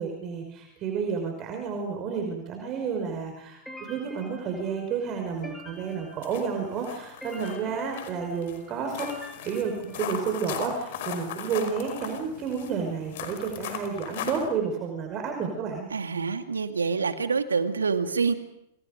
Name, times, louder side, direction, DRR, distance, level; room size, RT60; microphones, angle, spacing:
voice 1, 0.0-9.1 9.4-15.9, right 6 dB, 35° right, 2 dB, 5.5 m, -31 dB
sound 1, 3.7-10.6, equal, ahead, 6.4 m, -47 dB
sound 2, 5.8-5.9 6.2-14.5, left 8 dB, 55° left, 5.2 m, -38 dB
voice 2, 15.9-18.3, right 5 dB, 80° right, 8 dB, 2.4 m, -26 dB
29.5 x 27.5 x 5.3 m, 0.76 s
figure-of-eight pair, 95°, 0 cm